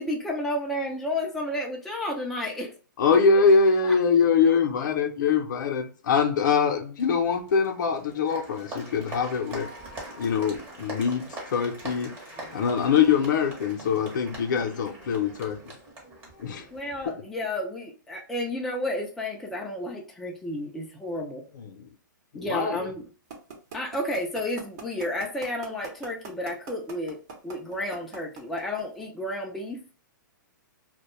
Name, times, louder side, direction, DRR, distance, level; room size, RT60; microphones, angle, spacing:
voice 1, 0.0-2.7 3.1-3.2 3.8-4.0 12.4-12.5 16.7-21.4 22.3-23.1 23.7-27.2 27.4-29.8, left 1 dB, ahead, 0.3 m, -31 dB
voice 2, 3.0-9.7 10.2-12.1 12.5-15.6 16.4-16.6 21.6-21.9 22.3-22.8, left 5 dB, 65° left, 0.6 m, -23 dB
Applause, 7.0-17.1, right 1 dB, 20° right, 0.8 m, -42 dB
sound 1, 23.3-29.0, right 5 dB, 55° right, 0.8 m, -40 dB
2.2 x 2.1 x 2.9 m
hypercardioid pair, 145°, 11 cm